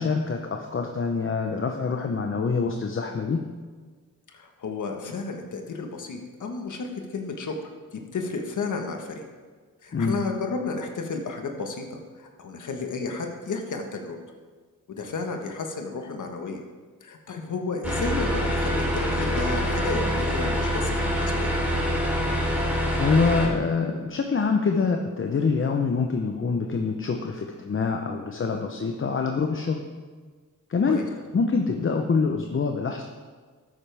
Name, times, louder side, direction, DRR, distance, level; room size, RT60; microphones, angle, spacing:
voice 1, 0.0-3.5 9.9-10.2 23.0-29.8 30.7-31.0 31.3-33.0, left 4 dB, 35° left, 3 dB, 0.8 m, -25 dB
voice 2, 4.3-9.2 9.8-14.2 14.9-16.6 17.0-21.5 30.9-31.0, left 3 dB, 60° left, 3 dB, 1.4 m, -32 dB
sound 1, 17.8-23.5, equal, 5° right, 2.9 m, -25 dB
12.5 x 9.0 x 3.5 m, 1.5 s
cardioid pair, 85°, 34 cm